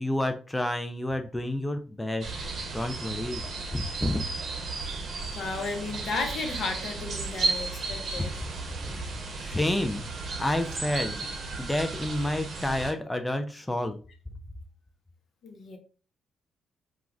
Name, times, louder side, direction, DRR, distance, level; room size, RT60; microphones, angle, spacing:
voice 1, 0.0-2.3 2.7-3.4 3.7-4.2 9.4-10.1 10.4-11.2 11.6-14.0, left 1 dB, 15° left, 6 dB, 0.4 m, -29 dB
sound 1, 2.2-12.9, right 3 dB, 60° right, 0.7 m, -34 dB
voice 2, 5.3-8.3 15.4-15.8, left 3 dB, 65° left, 3 dB, 0.7 m, -34 dB
2.3 x 2.3 x 3.1 m, 0.37 s
supercardioid pair, 50°, 0 cm